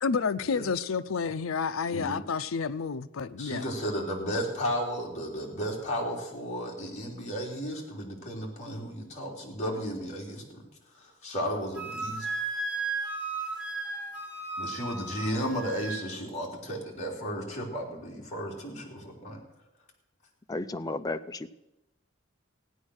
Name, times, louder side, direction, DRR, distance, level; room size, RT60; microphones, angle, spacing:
voice 1, 0.0-3.6, left 5 dB, 80° left, 0.5 m, -30 dB
voice 2, 3.4-12.3 14.6-19.4, equal, 35° left, 3.2 m, -34 dB
Wind instrument woodwind instrument, 11.7-16.0, right 3 dB, 5° right, 3.4 m, -34 dB
voice 3, 20.5-21.5, left 2 dB, 20° left, 0.5 m, -33 dB
16.0 x 9.8 x 6.4 m
head